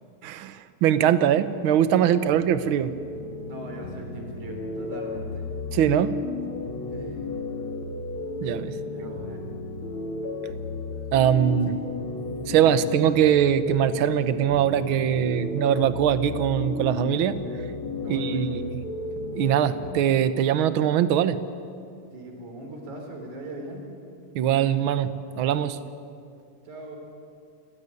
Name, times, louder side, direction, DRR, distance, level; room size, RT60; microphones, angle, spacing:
voice 1, 0.2-2.9 5.7-6.1 8.4-8.7 11.1-11.8 12.5-17.4 18.1-18.8 19.3-21.4 24.3-25.1 25.4-25.8, right 10 dB, 65° right, 13 dB, 1.3 m, -22 dB
sound 1, 1.7-19.9, left 3 dB, 45° left, 2.6 m, -34 dB
voice 2, 3.5-5.5 6.9-7.3 8.9-9.4 11.7-11.9 12.8-12.9 18.0-18.6 22.1-23.8 26.6-27.0, right 2 dB, 85° right, 2 dB, 5.4 m, -40 dB
29.5 x 16.5 x 9.6 m, 2.4 s
omnidirectional pair, 3.3 m